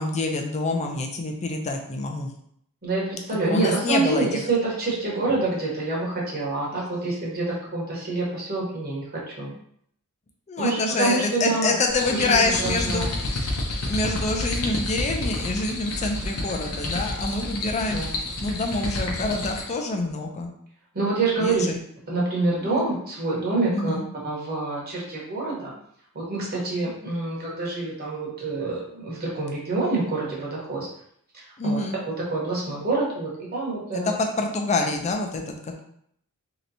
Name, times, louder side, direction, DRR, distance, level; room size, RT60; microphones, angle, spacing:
voice 1, 0.0-2.3 3.5-4.4 10.5-13.3 13.9-18.0 18.4-20.5 21.4-21.8 22.6-22.9 23.7-24.0 31.6-32.0 33.9-35.8, left 3 dB, 30° left, 3 dB, 0.4 m, -26 dB
voice 2, 2.8-9.0 9.4-9.5 10.6-11.7 12.1-13.1 17.9-18.2 20.9-21.7 22.1-24.0 24.2-25.7 26.1-30.9 31.3-31.8 32.1-34.1, right 3 dB, 45° right, -4 dB, 1.0 m, -27 dB
sound 1, 11.9-19.7, left 2 dB, 90° left, 0.7 m, -30 dB
3.1 x 2.9 x 2.7 m, 0.69 s
head